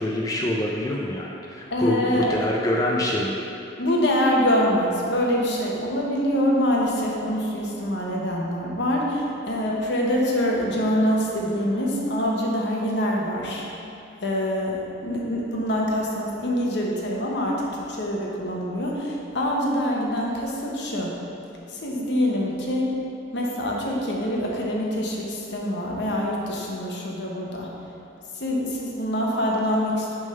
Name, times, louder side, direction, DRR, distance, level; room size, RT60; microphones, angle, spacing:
voice 1, 0.0-3.4, left 1 dB, 20° left, -2 dB, 0.4 m, -25 dB
voice 2, 1.7-2.5 3.8-13.6 14.2-21.2 21.7-23.0 23.3-27.7 28.3-30.1, equal, 70° left, -2 dB, 1.0 m, -25 dB
6.4 x 3.6 x 5.6 m, 2.8 s
head